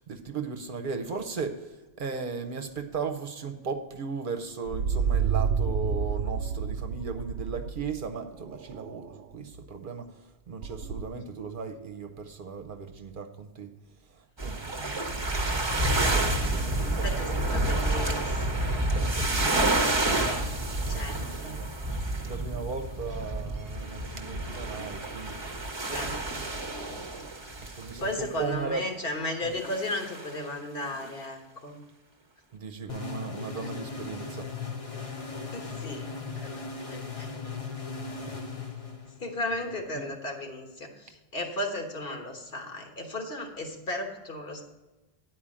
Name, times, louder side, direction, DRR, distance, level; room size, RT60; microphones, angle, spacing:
voice 1, 0.0-13.7 14.0-17.9 18.9-21.7 22.2-25.7 26.0-26.4 26.9-28.8 29.4-29.6 32.5-34.5 38.3-38.4 39.9-40.1, right 5 dB, 55° right, 6 dB, 0.9 m, -37 dB
sound 1, 4.7-8.0 8.4-9.2 9.5-9.6 10.6-11.1, right 6 dB, 85° right, 0.8 m, -29 dB
sound 2, 14.4-28.4 29.6-30.4 31.0-31.1, right 2 dB, 30° right, 0.9 m, -29 dB
voice 2, 17.0-19.1 20.9-21.6 25.9-26.1 28.0-31.8 33.6-33.7 35.5-36.1 36.4-37.3 39.2-44.6, left 1 dB, 60° left, 2 dB, 1.5 m, -35 dB
sound 3, 32.9-39.4, left 4 dB, 35° left, 1.0 m, -38 dB
9.9 x 4.6 x 7.5 m, 1.1 s
omnidirectional pair, 1.1 m